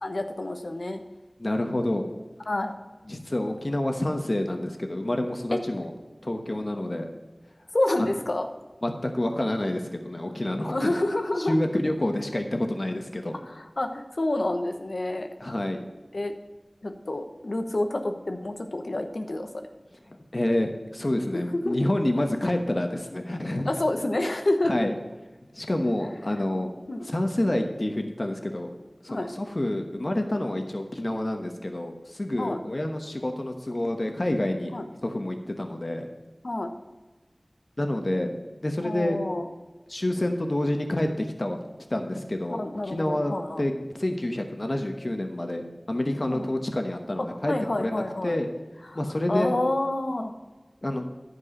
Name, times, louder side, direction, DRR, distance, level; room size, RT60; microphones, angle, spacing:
voice 1, 0.0-1.0 2.5-2.7 7.7-8.5 10.7-11.6 13.4-15.3 16.1-16.3 16.8-19.5 21.6-21.8 23.6-24.7 26.9-27.1 29.1-29.3 32.4-32.6 34.7-34.9 36.4-36.7 38.8-39.5 42.6-43.6 46.3-46.5 47.5-48.4 48.9-49.0 49.3-50.3, left 1 dB, 90° left, 5 dB, 0.9 m, -28 dB
voice 2, 1.4-2.1 3.1-5.9 6.2-7.1 8.0-8.1 8.8-10.9 11.4-13.3 15.4-15.8 20.1-23.7 24.6-24.9 25.5-26.7 27.0-28.7 29.0-34.7 35.0-36.1 37.8-38.3 38.6-39.2 39.9-41.6 41.9-47.5 47.8-48.5 48.9-49.5 50.8-51.1, left 1 dB, 55° left, 4 dB, 1.1 m, -28 dB
11.0 x 4.8 x 6.5 m, 1.2 s
wide cardioid pair, 40°, 0 cm